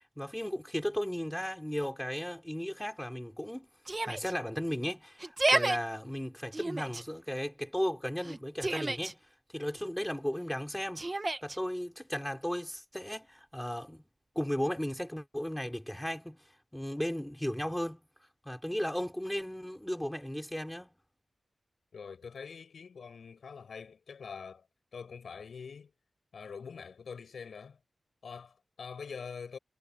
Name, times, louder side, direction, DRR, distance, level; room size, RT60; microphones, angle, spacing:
voice 1, 0.2-3.7 4.0-9.2 9.5-11.0 11.4-14.0 14.4-16.4 16.7-18.0 18.5-21.0, equal, 5° left, 5.6 m, -35 dB
Yell, 3.9-4.3 5.2-5.8 6.5-7.0 8.2-9.1 11.0-11.6, right 2 dB, 25° right, 1.3 m, -31 dB
voice 2, 21.9-24.6 24.9-25.9 26.3-27.8 28.2-29.6, left 6 dB, 85° left, 5.8 m, -44 dB
wide cardioid pair, 100°, 0 cm